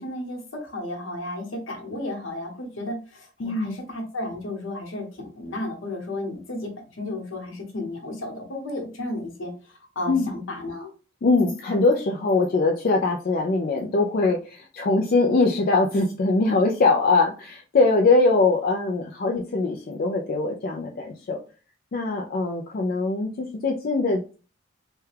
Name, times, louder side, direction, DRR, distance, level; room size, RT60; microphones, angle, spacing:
voice 1, 0.0-10.9, left 1 dB, 70° left, 2 dB, 1.0 m, -33 dB
voice 2, 3.4-3.8 10.1-10.3 11.2-21.4 21.9-24.4, left 3 dB, 45° left, 1 dB, 0.4 m, -22 dB
3.3 x 2.2 x 3.2 m, 0.35 s
head